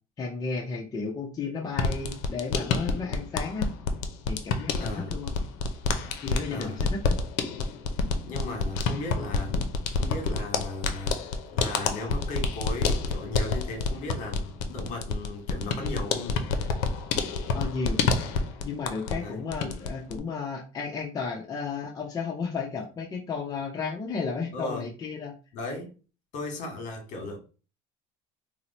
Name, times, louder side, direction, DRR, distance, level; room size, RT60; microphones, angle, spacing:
voice 1, 0.2-3.7 4.3-5.3 6.2-7.2 17.5-18.0 18.6-25.3, left 4 dB, 25° left, 0.5 m, -33 dB
sound 1, 1.7-19.2 19.5-20.2, left 4 dB, 90° left, 0.5 m, -28 dB
voice 2, 4.8-5.1 6.5-6.8 8.2-9.6 10.0-11.2 11.5-16.4 19.2-19.5 24.5-24.9 25.5-25.9 26.3-27.4, left 2 dB, 60° left, 1.2 m, -36 dB
2.9 x 2.0 x 3.9 m
cardioid pair, 130°, 14 cm